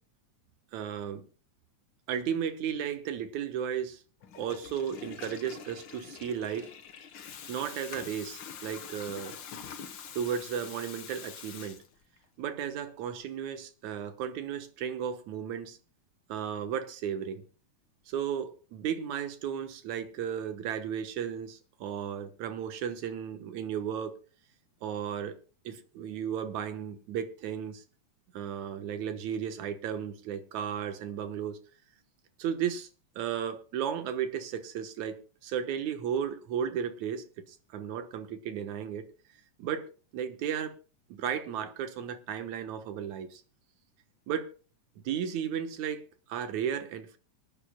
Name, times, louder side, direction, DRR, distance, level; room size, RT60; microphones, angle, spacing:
voice 1, 0.7-1.2 2.1-4.0 4.4-6.7 7.5-9.4 10.1-11.8 12.4-15.8 16.3-17.4 18.1-24.2 24.8-25.3 25.6-27.8 28.3-31.6 32.4-32.9 33.2-35.2 35.4-39.1 39.6-40.8 41.2-43.4 44.3-44.5 45.0-46.0 46.3-47.2, right 8 dB, 70° right, 2.4 m, -34 dB
Water tap faucet / Toilet flush, 4.2-12.2, left 7 dB, 60° left, 1.2 m, -45 dB
25.5 x 9.8 x 2.2 m
omnidirectional pair, 3.5 m